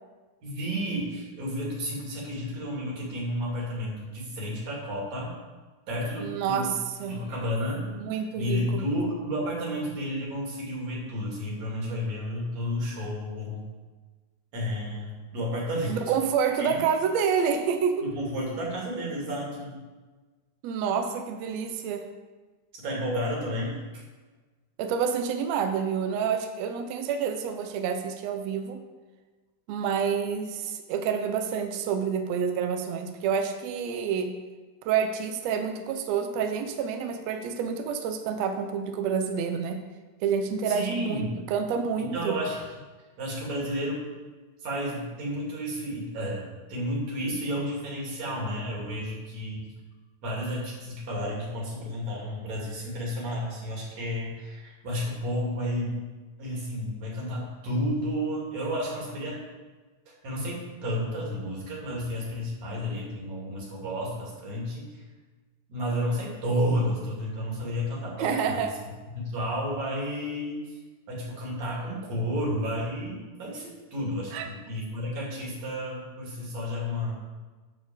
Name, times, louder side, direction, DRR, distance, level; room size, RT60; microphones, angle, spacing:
voice 1, 0.4-5.3 5.9-6.7 7.1-13.6 14.5-16.0 16.6-16.8 18.0-19.8 22.7-24.0 40.7-41.3 42.1-42.7 43.2-44.1 44.6-46.4 46.7-49.7 50.2-56.0 56.4-59.4 60.1-65.0 65.7-68.7 69.1-70.8 71.1-77.1, equal, 55° right, -4 dB, 3.5 m, -31 dB
voice 2, 6.2-6.7 7.0-7.2 7.9-8.8 15.9-18.0 20.6-22.1 24.8-28.8 29.7-34.4 34.8-39.8 40.2-42.4 68.2-68.7 74.3-74.5, right 7 dB, 80° right, 6 dB, 1.5 m, -28 dB
11.0 x 4.4 x 7.0 m, 1.3 s
omnidirectional pair, 3.9 m